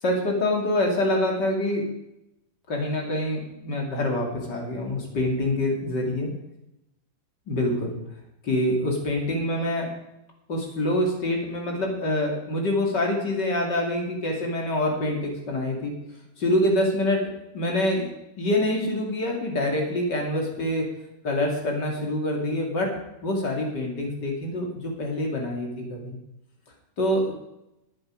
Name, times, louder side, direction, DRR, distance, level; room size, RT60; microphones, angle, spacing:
voice 1, 0.0-1.9 2.7-6.3 7.5-8.0 8.4-9.9 10.5-15.9 16.4-17.2 17.5-18.1 18.4-20.9 21.2-22.9 23.2-26.2 27.0-27.3, left 1 dB, 30° left, 0 dB, 2.5 m, -25 dB
21.0 x 8.0 x 5.1 m, 0.87 s
omnidirectional pair, 4.7 m